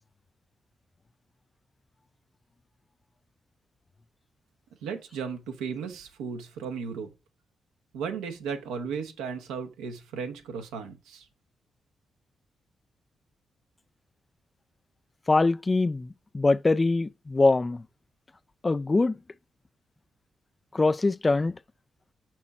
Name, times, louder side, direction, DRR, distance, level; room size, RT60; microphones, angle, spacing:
voice 1, 4.8-7.1 7.9-11.2, right 6 dB, 85° right, 1.0 m, -35 dB
voice 2, 15.3-17.8 18.6-19.2 20.7-21.5, left 3 dB, 30° left, 0.3 m, -23 dB
6.1 x 4.8 x 4.2 m
supercardioid pair, 45°, 0 cm